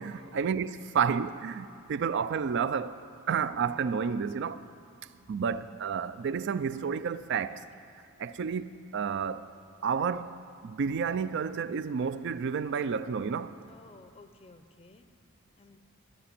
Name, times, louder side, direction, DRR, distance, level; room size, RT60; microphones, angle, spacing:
voice 1, 0.0-3.0 3.3-4.6 5.3-7.6 8.2-8.7 8.9-9.4 9.8-10.3 10.6-13.5, right 6 dB, 55° right, 0.4 m, -30 dB
voice 2, 4.4-4.8 7.5-7.6 13.7-15.1 15.6-15.8, left 3 dB, 25° left, 0.5 m, -55 dB
13.5 x 5.9 x 9.7 m
head